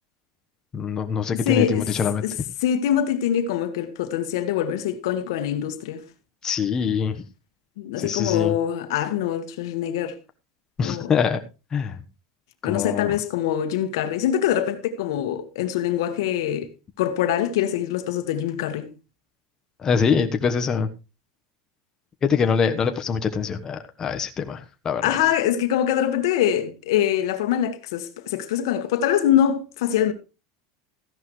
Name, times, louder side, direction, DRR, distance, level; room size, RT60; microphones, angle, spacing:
voice 1, 0.7-2.2 6.4-7.2 8.0-8.5 10.8-11.4 11.7-11.9 12.6-13.1 19.8-20.9 22.2-24.6 24.8-25.2, left 6 dB, 25° left, 1.2 m, -24 dB
voice 2, 1.3-2.0 2.2-6.0 7.8-10.2 10.8-11.1 12.6-16.7 17.0-18.9 25.0-30.1, left 10 dB, 80° left, 1.7 m, -24 dB
14.5 x 11.0 x 3.2 m
supercardioid pair, 125°, 2 cm